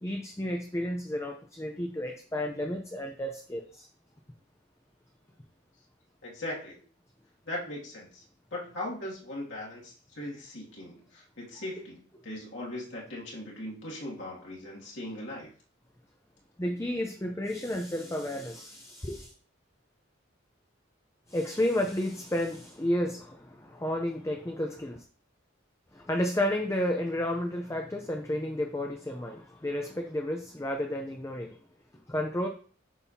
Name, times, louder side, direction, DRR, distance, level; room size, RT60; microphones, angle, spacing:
voice 1, 0.0-3.9 11.8-11.9 16.6-19.3 21.3-25.0 25.9-31.6 32.1-32.5, left 1 dB, 15° left, 0.6 m, -32 dB
voice 2, 6.2-6.8 7.5-8.2 8.5-15.5, left 1 dB, 70° left, 2.4 m, -39 dB
8.3 x 5.5 x 2.8 m
head